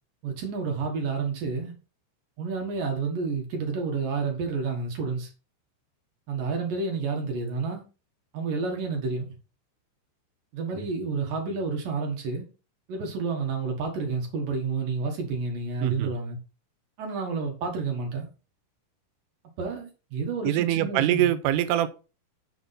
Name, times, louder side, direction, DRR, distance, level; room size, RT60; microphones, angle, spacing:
voice 1, 0.2-1.7 2.4-5.3 6.3-7.8 8.3-9.3 10.5-12.4 12.9-16.4 17.0-18.3 19.6-21.3, right 4 dB, 60° right, 2.5 m, -30 dB
voice 2, 15.8-16.1 20.4-21.9, right 12 dB, 85° right, 3.2 m, -24 dB
7.1 x 5.9 x 4.2 m
omnidirectional pair, 5.8 m